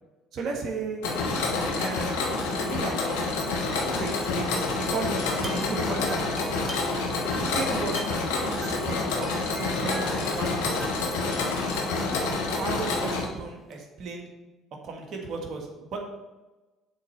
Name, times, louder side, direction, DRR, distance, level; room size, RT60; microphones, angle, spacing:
voice 1, 0.3-1.0 1.8-3.5 3.8-6.7 7.4-10.8 12.5-14.3 14.8-16.0, right 4 dB, 60° right, 1 dB, 1.7 m, -35 dB
Mechanisms, 1.0-13.2, left 3 dB, 85° left, 1.3 m, -28 dB
sound 1, 5.4-7.1 7.3-12.4 13.3-13.4 13.7-13.8, right 1 dB, 25° right, 1.6 m, -44 dB
7.4 x 4.3 x 6.6 m, 1.1 s
hypercardioid pair, 60°, 0 cm